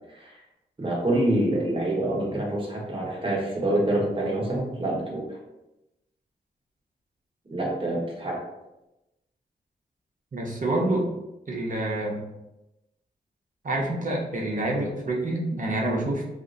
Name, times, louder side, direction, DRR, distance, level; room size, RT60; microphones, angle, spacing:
voice 1, 0.8-5.3 7.5-8.4, right 1 dB, 30° right, -3 dB, 1.1 m, -26 dB
voice 2, 10.3-11.1 11.5-12.2 13.6-16.2, right 1 dB, 50° right, -1 dB, 0.8 m, -27 dB
2.8 x 2.5 x 2.4 m, 0.94 s
cardioid pair, 50°, 17 cm